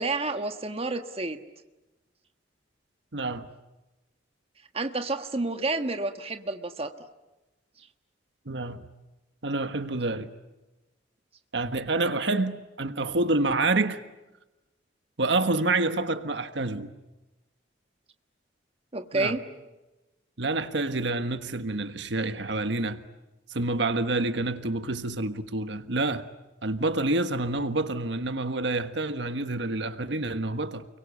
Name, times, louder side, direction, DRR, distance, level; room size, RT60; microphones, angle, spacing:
voice 1, 0.0-1.4 4.7-6.9 18.9-19.4, right 3 dB, 30° right, 1.4 m, -29 dB
voice 2, 3.1-3.5 8.5-8.9 9.4-10.3 11.5-14.0 15.2-16.9 19.1-19.4 20.4-23.0 23.5-26.3 26.6-30.9, right 2 dB, 75° right, 1.4 m, -28 dB
30.0 x 23.0 x 8.3 m
head